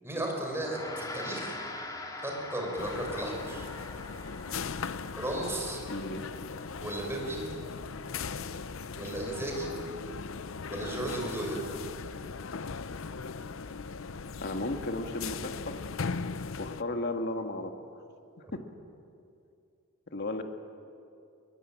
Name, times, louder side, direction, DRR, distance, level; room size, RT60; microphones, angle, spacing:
voice 1, 0.0-1.6 2.2-3.7 5.2-5.8 6.8-7.4 9.0-9.7 10.7-11.6 18.4-18.5, right 1 dB, 10° right, 0 dB, 6.1 m, -35 dB
Gong, 0.5-10.2, left 2 dB, 20° left, 2.4 m, -45 dB
sound 1, 2.8-16.8, left 5 dB, 70° left, 0.7 m, -39 dB
voice 2, 5.9-6.3 14.4-15.8 16.6-17.7 18.4-18.7 20.1-20.4, left 2 dB, 55° left, 5 dB, 1.8 m, -34 dB
22.5 x 21.5 x 8.9 m, 2.5 s
head